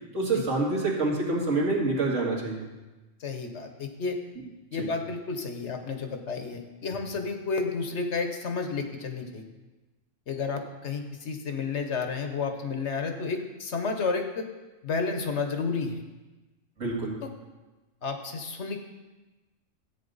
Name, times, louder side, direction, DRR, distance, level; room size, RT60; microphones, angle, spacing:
voice 1, 0.1-2.7 4.8-4.9 16.8-17.2, right 2 dB, 65° right, -3 dB, 2.4 m, -27 dB
voice 2, 3.2-4.2 4.7-9.4 10.3-14.5 14.8-16.0 17.2-17.3 18.0-18.9, left 4 dB, 60° left, 5 dB, 1.2 m, -31 dB
13.5 x 8.5 x 4.0 m, 1.2 s
omnidirectional pair, 1.4 m